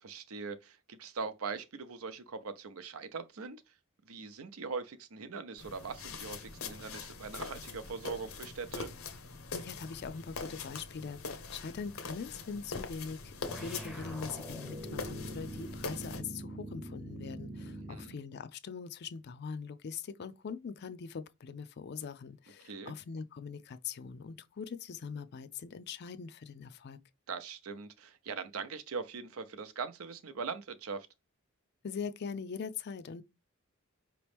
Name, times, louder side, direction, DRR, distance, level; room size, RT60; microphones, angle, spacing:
voice 1, 0.0-3.6 4.1-8.9 17.7-18.2 22.6-22.9 27.3-31.1, right 5 dB, 75° right, 0.6 m, -41 dB
sound 1, 5.6-16.2, left 4 dB, 70° left, 0.8 m, -43 dB
voice 2, 9.5-27.0 31.8-33.2, left 5 dB, 50° left, 0.4 m, -42 dB
sound 2, 13.5-18.2, right 1 dB, ahead, 0.7 m, -43 dB
5.0 x 3.0 x 3.4 m
head